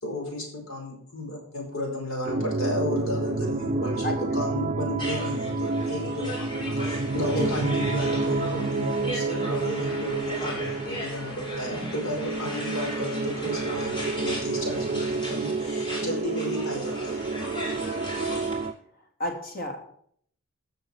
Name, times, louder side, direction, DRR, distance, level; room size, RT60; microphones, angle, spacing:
voice 1, 0.0-17.3, left 1 dB, 65° left, 0 dB, 4.8 m, -33 dB
sound 1, 2.3-18.7, right 3 dB, 35° right, 0.5 m, -29 dB
sound 2, 5.0-18.7, left 1 dB, 20° left, 3.0 m, -37 dB
voice 2, 19.2-19.8, left 1 dB, 45° left, 3 dB, 2.8 m, -30 dB
13.5 x 6.6 x 6.4 m, 0.63 s
head